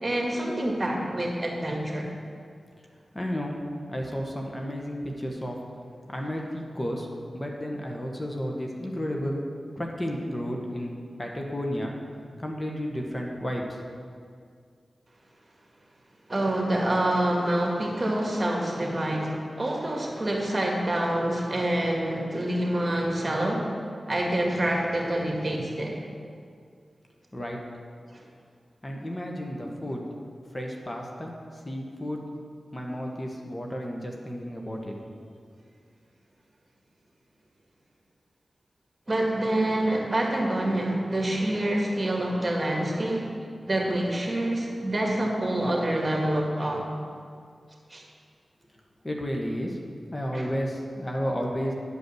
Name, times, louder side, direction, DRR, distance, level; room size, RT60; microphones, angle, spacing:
voice 1, 0.0-2.1 16.3-23.7 24.1-25.9 28.1-28.2 39.1-43.3 43.7-46.9 47.9-48.0 50.3-50.5, right 1 dB, 35° right, -1 dB, 1.9 m, -27 dB
voice 2, 3.1-3.6 3.9-5.6 6.1-7.1 7.3-9.4 9.7-11.9 12.4-13.8 27.3-27.6 28.8-30.0 30.5-31.3 31.6-32.2 32.7-35.0 49.0-49.8 50.1-51.7, equal, 30° left, 0 dB, 1.4 m, -32 dB
10.0 x 5.3 x 6.4 m, 2.1 s
cardioid pair, 40°, 0 cm